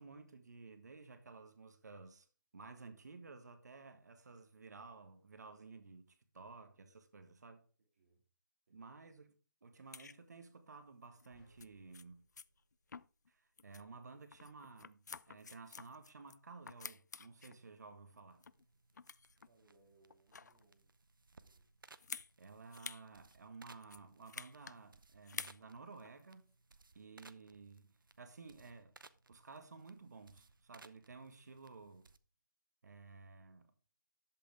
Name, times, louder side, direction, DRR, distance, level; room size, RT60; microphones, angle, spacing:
voice 1, 0.0-2.3 2.5-7.7 8.7-12.2 13.3-18.4 22.4-26.4 26.9-28.9 29.3-32.1 32.8-33.7, right 4 dB, 55° right, 1.6 m, -54 dB
voice 2, 6.3-6.8 7.8-8.2 8.7-8.9 19.4-21.0 21.4-21.7, right 3 dB, 35° right, 2.7 m, -72 dB
sound 1, 9.9-10.2 11.2-11.3 11.6-11.7 11.9-12.0 12.4-12.5 12.9-13.3 13.6-13.8 14.3-16.4 16.7-17.6 18.1-18.6 18.9-19.5 20.1-20.6 22.0-22.3 22.7-23.0 23.3-23.4 23.8-24.8 25.2-25.6 26.0-26.2, left 5 dB, 60° left, 0.4 m, -49 dB
sound 2, 11.3-13.7, equal, 15° left, 6.3 m, -73 dB
sound 3, 18.3-32.2, right 3 dB, 85° right, 0.9 m, -64 dB
11.5 x 8.0 x 3.5 m
hypercardioid pair, 170°, 11 cm